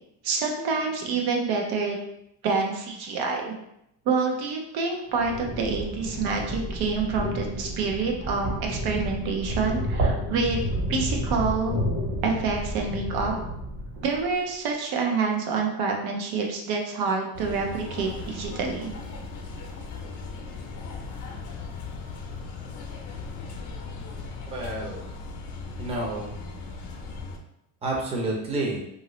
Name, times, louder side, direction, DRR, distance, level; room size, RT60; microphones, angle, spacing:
voice 1, 0.2-2.0 2.4-3.5 4.1-10.6 10.9-11.8 12.2-13.3 14.0-18.9, right 4 dB, 80° right, 1 dB, 0.8 m, -27 dB
sound 1, 5.1-14.3, right 1 dB, 60° right, 1.3 m, -30 dB
sound 2, 17.3-27.4, left 4 dB, 50° left, 0.6 m, -38 dB
voice 2, 24.5-25.0 25.8-26.3 27.8-28.8, right 2 dB, 15° right, -2 dB, 0.6 m, -29 dB
2.9 x 2.6 x 3.1 m, 0.80 s
cardioid pair, 140°, 37 cm